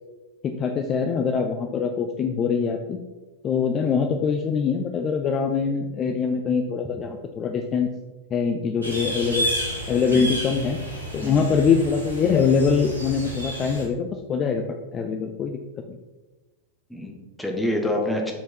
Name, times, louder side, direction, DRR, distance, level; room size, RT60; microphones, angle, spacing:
voice 1, 0.4-3.0 3.4-7.9 8.3-9.5 9.9-10.8 11.1-14.6 14.9-15.6 15.9-16.0, left 6 dB, 30° left, 4 dB, 0.5 m, -23 dB
sound 1, 8.8-13.8, equal, 85° right, 1.8 m, -31 dB
voice 2, 16.9-18.3, left 1 dB, 5° left, 1 dB, 1.3 m, -27 dB
7.3 x 4.6 x 4.5 m, 1.2 s
figure-of-eight pair, 90°, 0 cm